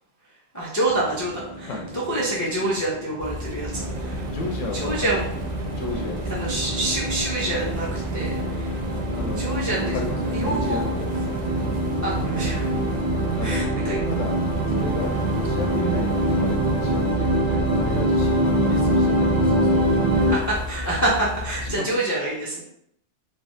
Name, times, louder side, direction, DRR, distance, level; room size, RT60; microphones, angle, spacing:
voice 1, 0.5-4.2 4.7-5.3 6.3-8.8 9.4-10.0 10.3-10.9 12.0-12.8 13.4-14.0 20.1-22.6, right 1 dB, 30° left, -6 dB, 0.3 m, -27 dB
sound 1, 0.9-20.3, right 1 dB, 35° right, 1.2 m, -25 dB
voice 2, 1.6-1.9 4.2-5.2 5.7-6.5 9.2-9.5 9.9-11.1 13.3-13.7 14.0-14.4 14.7-20.6 21.6-22.0, left 3 dB, 80° left, 1 dB, 0.9 m, -33 dB
sound 2, 3.2-21.7, left 2 dB, 80° right, 0.3 m, -33 dB
sound 3, 3.7-16.5, right 3 dB, 55° right, 0.7 m, -34 dB
3.1 x 2.4 x 2.6 m, 0.71 s
omnidirectional pair, 1.3 m